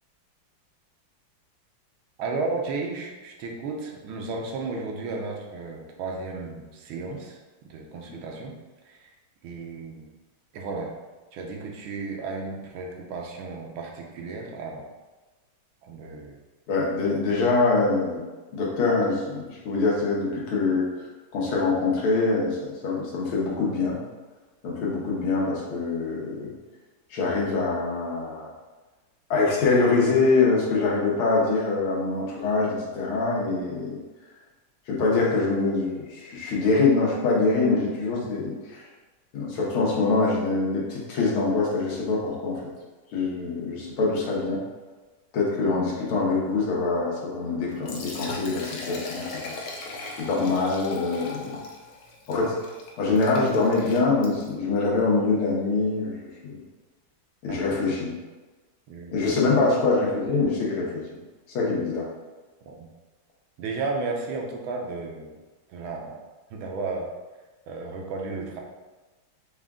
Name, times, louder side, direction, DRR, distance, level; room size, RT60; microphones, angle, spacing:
voice 1, 2.2-7.4 7.7-8.6 8.9-9.1 9.4-10.1 10.5-11.0 11.3-14.9 15.8-16.4 38.4-38.5 45.6-46.0 57.5-57.7 58.9-59.3 62.7-62.9 63.6-65.4 65.7-66.2 66.5-67.1 67.7-68.6, right 3 dB, 85° right, 0 dB, 1.5 m, -33 dB
voice 2, 16.7-18.2 18.5-20.9 21.3-24.0 24.6-26.5 27.1-28.5 29.3-34.0 34.9-38.9 39.3-42.6 43.1-44.6 45.3-49.5 50.2-51.6 52.3-52.6 53.0-56.6 57.4-58.1 59.1-60.9 61.5-62.1, left 3 dB, 85° left, -4 dB, 1.9 m, -24 dB
Liquid, 47.7-54.6, left 3 dB, 70° left, 0.9 m, -39 dB
4.9 x 2.4 x 3.5 m, 1.2 s
omnidirectional pair, 2.2 m